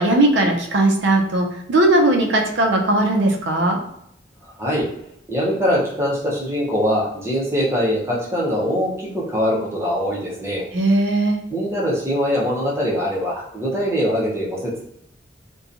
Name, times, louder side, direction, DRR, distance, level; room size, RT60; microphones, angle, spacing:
voice 1, 0.0-3.8 10.7-11.4, right 1 dB, 80° right, 1 dB, 0.5 m, -18 dB
voice 2, 5.3-10.6 11.5-14.8, equal, 15° right, -5 dB, 0.7 m, -22 dB
2.7 x 2.2 x 2.5 m, 0.75 s
head